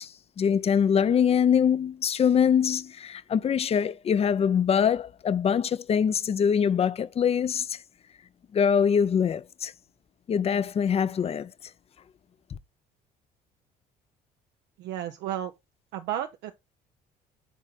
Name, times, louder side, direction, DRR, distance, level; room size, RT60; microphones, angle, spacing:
voice 1, 0.0-7.8 8.5-9.7 10.3-11.5, left 7 dB, 35° left, 0.6 m, -24 dB
voice 2, 14.8-15.5 15.9-16.5, right 11 dB, 85° right, 0.7 m, -32 dB
8.3 x 4.1 x 4.0 m
cardioid pair, 110°, 17 cm